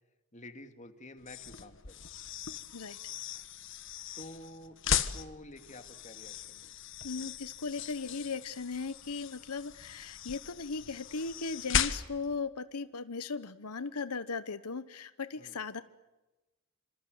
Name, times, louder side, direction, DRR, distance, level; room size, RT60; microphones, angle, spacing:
voice 1, 0.3-2.0 4.2-6.7 15.4-15.6, left 1 dB, 35° left, 7 dB, 2.4 m, -50 dB
sound 1, 1.2-12.3, left 8 dB, 55° left, 1.5 m, -37 dB
voice 2, 7.0-15.8, left 4 dB, 90° left, 13 dB, 1.1 m, -37 dB
27.5 x 27.0 x 7.9 m, 1.1 s
head